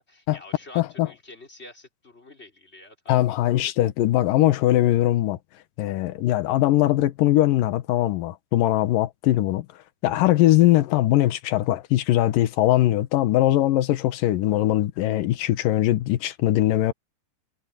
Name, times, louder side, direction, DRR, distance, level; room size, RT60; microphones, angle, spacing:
voice 1, 0.0-3.2 3.6-3.7, left 2 dB, 15° left, 4.6 m, -47 dB
voice 2, 0.8-1.1 3.1-5.4 5.8-9.7 10.0-16.9, left 15 dB, 70° left, 2.6 m, -21 dB
omnidirectional pair, 4.2 m